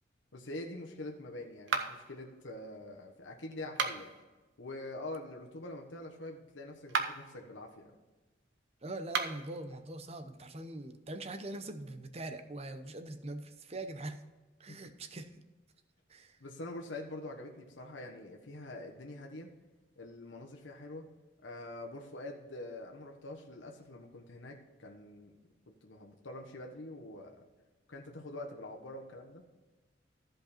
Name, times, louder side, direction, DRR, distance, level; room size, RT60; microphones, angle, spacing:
voice 1, 0.3-4.1 4.6-8.0 16.4-19.5 20.0-21.0 21.4-25.3 25.7-27.4 27.9-29.4, left 2 dB, 85° left, 1 dB, 1.3 m, -45 dB
sound 1, 1.7-2.2 3.6-4.2 6.8-7.3 9.0-9.5, right 5 dB, 75° right, 1.0 m, -34 dB
voice 2, 8.8-14.2 14.6-15.4 16.1-16.4, right 2 dB, 35° right, 9 dB, 0.8 m, -42 dB
14.5 x 5.3 x 4.4 m, 1.2 s
head